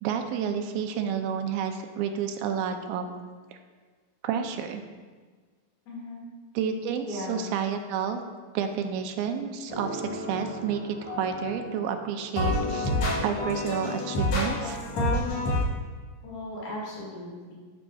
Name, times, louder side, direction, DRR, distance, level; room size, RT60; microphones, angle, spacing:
voice 1, 0.0-3.1 4.2-4.8 6.6-8.2 8.5-12.9 13.2-14.8, right 7 dB, 85° right, 6 dB, 2.3 m, -30 dB
voice 2, 5.9-6.3 7.0-7.5 16.2-17.5, left 1 dB, 80° left, -5 dB, 3.9 m, -37 dB
sound 1, 9.7-12.0 12.4-15.6, left 1 dB, 60° left, 2.2 m, -29 dB
12.5 x 5.3 x 2.3 m, 1.5 s
omnidirectional pair, 4.1 m